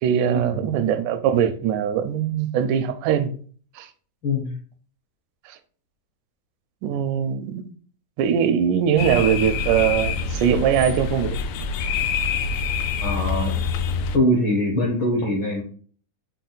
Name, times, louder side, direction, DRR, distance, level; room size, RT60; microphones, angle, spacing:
voice 1, 0.0-3.3 3.8-3.9 5.5-5.6 6.8-7.7 8.2-11.4, right 8 dB, 85° right, 2.0 m, -21 dB
sound 1, 9.0-14.2, left 5 dB, 80° left, 1.9 m, -26 dB
voice 2, 13.0-13.5 14.1-15.6, left 1 dB, 65° left, 1.2 m, -22 dB
5.8 x 2.2 x 3.8 m
omnidirectional pair, 3.6 m